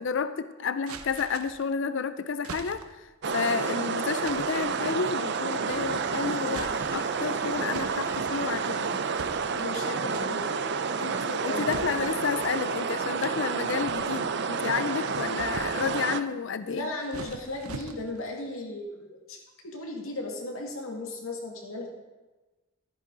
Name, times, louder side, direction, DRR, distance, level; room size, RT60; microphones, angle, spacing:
voice 1, 0.0-3.1 3.3-9.0 11.0-16.9, left 6 dB, 60° left, 13 dB, 0.4 m, -31 dB
sound 1, 0.9-1.7 2.4-3.1 4.2-4.7 5.7-6.1 6.5-7.2 7.7-8.7 9.2-9.8 10.1-10.6 11.7-12.6 13.2-14.4 14.9-16.0 16.7-18.3, right 4 dB, 90° right, 0.8 m, -43 dB
voice 2, 3.2-3.7 9.5-10.7 11.4-12.2 16.7-21.9, left 2 dB, 75° left, 1 dB, 2.1 m, -36 dB
sound 2, 3.2-16.2, right 5 dB, 50° right, 0.5 m, -30 dB
sound 3, 5.7-10.2 10.4-10.8, right 2 dB, 10° right, 0.7 m, -46 dB
13.5 x 9.4 x 3.9 m, 1.2 s
head